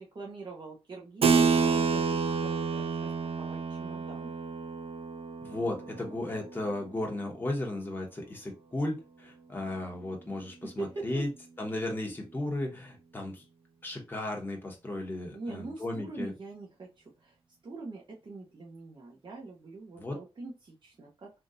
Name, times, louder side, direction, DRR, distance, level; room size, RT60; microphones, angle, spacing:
voice 1, 0.0-3.1 3.4-4.3 10.8-11.3 15.3-17.4 17.6-21.3, right 3 dB, 50° right, -2 dB, 0.9 m, -43 dB
Keyboard (musical), 1.2-7.2, right 5 dB, 70° right, 0.4 m, -29 dB
voice 2, 5.4-11.3 11.6-13.4 13.8-16.3 20.0-20.2, left 1 dB, 20° left, 0 dB, 1.0 m, -35 dB
3.6 x 2.4 x 2.6 m, 0.26 s
wide cardioid pair, 100°, 10 cm